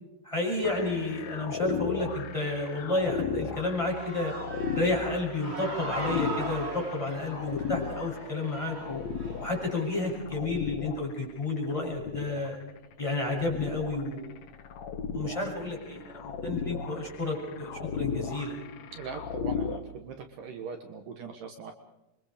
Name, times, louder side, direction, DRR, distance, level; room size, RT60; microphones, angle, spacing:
voice 1, 0.2-4.3 4.7-9.0 9.4-12.6 13.0-14.3 15.1-18.5, left 2 dB, 10° left, -2 dB, 7.2 m, -31 dB
sound 1, 0.6-19.8, left 6 dB, 60° left, 2.1 m, -36 dB
Human voice / Cheering, 3.6-10.2, right 2 dB, 25° right, 1.4 m, -40 dB
voice 2, 18.9-21.7, right 5 dB, 65° right, 5 dB, 2.8 m, -41 dB
27.0 x 23.5 x 5.1 m, 0.94 s
omnidirectional pair, 4.2 m